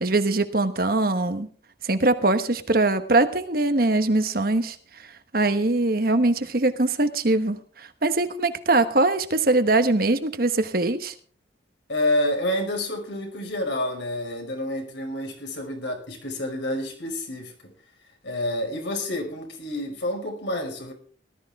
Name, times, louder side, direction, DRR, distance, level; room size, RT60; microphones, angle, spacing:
voice 1, 0.0-1.5 1.8-4.8 5.0-11.1, right 2 dB, 50° right, 9 dB, 1.2 m, -22 dB
voice 2, 11.9-17.7 18.2-20.9, left 1 dB, 80° left, 2 dB, 5.6 m, -28 dB
18.5 x 13.0 x 3.6 m, 0.44 s
head